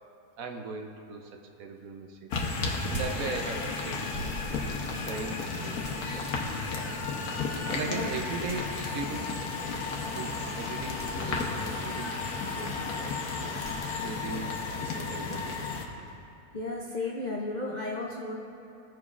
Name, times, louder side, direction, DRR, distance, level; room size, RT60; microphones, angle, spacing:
voice 1, 0.4-2.5 2.9-4.6 5.0-6.3 6.7-6.9 7.7-9.3 10.1-12.2 12.5-15.6, right 4 dB, 70° right, 4 dB, 1.0 m, -39 dB
sound 1, 1.8-1.9 2.7-3.8 4.1-7.0 8.5-9.1 10.9-11.6 13.6-16.2, right 1 dB, 20° right, 2.1 m, -44 dB
sound 2, 2.3-15.9, left 4 dB, 75° left, 1.4 m, -33 dB
voice 2, 16.5-18.3, left 2 dB, 55° left, -3 dB, 0.5 m, -34 dB
16.0 x 6.0 x 2.4 m, 2.7 s
omnidirectional pair, 1.7 m